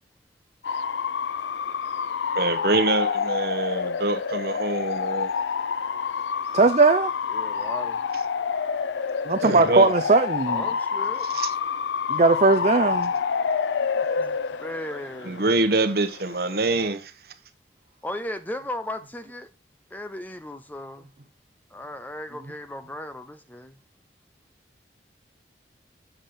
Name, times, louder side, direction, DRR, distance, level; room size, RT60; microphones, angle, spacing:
Bark / Motor vehicle (road) / Siren, 0.6-16.9, left 6 dB, 90° left, 0.4 m, -28 dB
voice 1, 2.3-5.3 9.4-9.9 11.3-11.5 15.2-17.1, right 2 dB, 60° right, 1.0 m, -25 dB
voice 2, 6.5-7.1 9.3-10.6 12.1-13.1, right 3 dB, 40° right, 0.5 m, -19 dB
voice 3, 7.3-8.0 10.5-11.3 14.6-15.5 18.0-19.5 19.9-21.1 21.7-23.7, left 1 dB, 10° left, 0.5 m, -36 dB
7.2 x 7.0 x 3.6 m
head